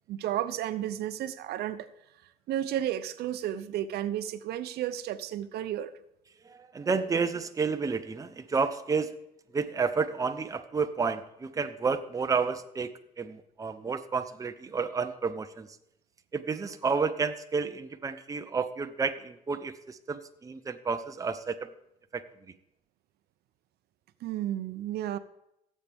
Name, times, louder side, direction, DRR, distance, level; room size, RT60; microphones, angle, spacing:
voice 1, 0.1-1.9 2.5-5.9 24.2-25.2, right 11 dB, 70° right, 12 dB, 0.6 m, -32 dB
voice 2, 6.4-9.1 9.5-15.7 16.3-21.7 22.1-22.2, right 5 dB, 20° right, 8 dB, 0.6 m, -31 dB
16.5 x 7.4 x 3.5 m, 0.82 s
cardioid pair, 110°, 17 cm